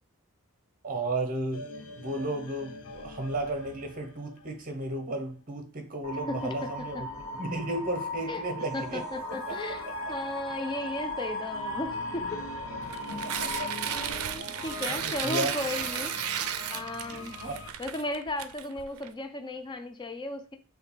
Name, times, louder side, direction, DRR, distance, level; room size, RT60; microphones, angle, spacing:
voice 1, 0.8-1.7 2.0-7.1 7.3-9.0 9.3-9.5 9.8-9.9 12.9-13.7 14.5-14.6 15.0-15.5 17.1-17.6, right 2 dB, 40° right, 0.9 m, -34 dB
sound 1, 1.5-5.0 5.2-5.3 6.4-17.7, left 2 dB, 70° left, 0.7 m, -43 dB
sound 2, 6.0-14.1, left 1 dB, 45° left, 0.9 m, -37 dB
voice 2, 6.3-7.1 8.3-8.4 8.7-12.4 13.9-16.1 16.7-17.4 17.8-20.6, left 2 dB, 20° left, 0.5 m, -35 dB
Tearing, 12.8-19.1, right 9 dB, 75° right, 0.4 m, -34 dB
5.7 x 2.2 x 3.2 m
head